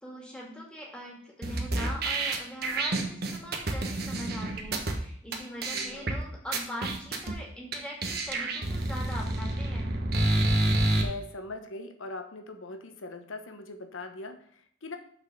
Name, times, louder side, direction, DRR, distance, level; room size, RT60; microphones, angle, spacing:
voice 1, 0.0-9.9, equal, 5° left, -2 dB, 2.1 m, -41 dB
sound 1, 1.4-4.9 5.3-5.4 5.6-6.1 6.5-7.3 7.7-7.8 8.0-11.0, right 2 dB, 50° right, 1.2 m, -28 dB
voice 2, 5.7-6.2 10.9-15.0, left 2 dB, 80° left, 7 dB, 1.0 m, -41 dB
6.2 x 6.2 x 6.7 m, 0.65 s
head